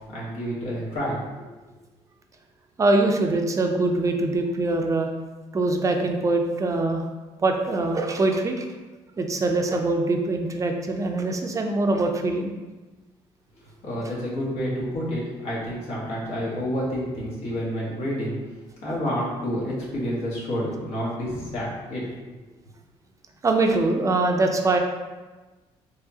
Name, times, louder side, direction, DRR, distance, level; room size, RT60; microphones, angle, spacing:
voice 1, 0.1-1.5 13.8-18.4 18.8-22.0, equal, 70° left, -5 dB, 1.4 m, -29 dB
voice 2, 2.8-5.1 5.5-7.0 7.4-8.7 9.2-12.5 23.4-24.8, right 2 dB, 30° right, 3 dB, 0.5 m, -23 dB
4.8 x 3.0 x 2.8 m, 1.2 s
cardioid pair, 100°, 11 cm